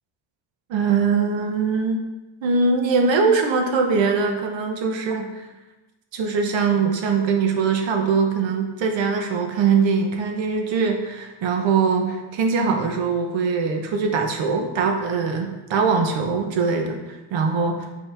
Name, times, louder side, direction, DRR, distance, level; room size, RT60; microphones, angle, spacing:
voice 1, 0.7-2.0 2.4-5.3 6.1-17.8, right 5 dB, 90° right, 4 dB, 1.0 m, -22 dB
8.5 x 4.2 x 3.4 m, 1.1 s
cardioid pair, 165°, 44 cm